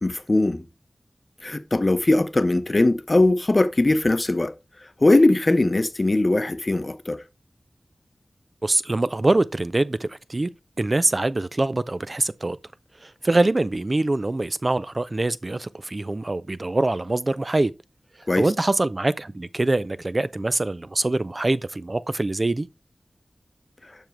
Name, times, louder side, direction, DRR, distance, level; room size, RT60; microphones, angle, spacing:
voice 1, 0.0-0.6 1.4-4.5 5.0-7.2 18.3-18.5, left 2 dB, 40° left, 0.6 m, -20 dB
voice 2, 8.6-10.5 10.8-12.6 13.0-17.7 18.4-22.7, right 2 dB, 40° right, 0.3 m, -24 dB
7.0 x 5.9 x 3.2 m
wide cardioid pair, 85°, 0 cm